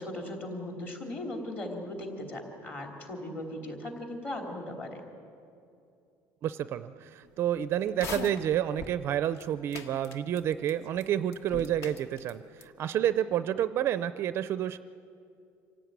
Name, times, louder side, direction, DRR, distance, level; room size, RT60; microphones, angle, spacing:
voice 1, 0.0-5.0, left 1 dB, 25° left, 2 dB, 3.3 m, -38 dB
voice 2, 6.4-14.8, right 10 dB, 35° right, 13 dB, 0.5 m, -29 dB
sound 1, 7.9-9.0 9.4-9.5 9.7-10.7 11.0-11.1 11.3-12.3 12.6-12.7, left 5 dB, 45° left, 1.4 m, -40 dB
25.5 x 16.5 x 9.5 m, 2.5 s
cardioid pair, 175°, 7 cm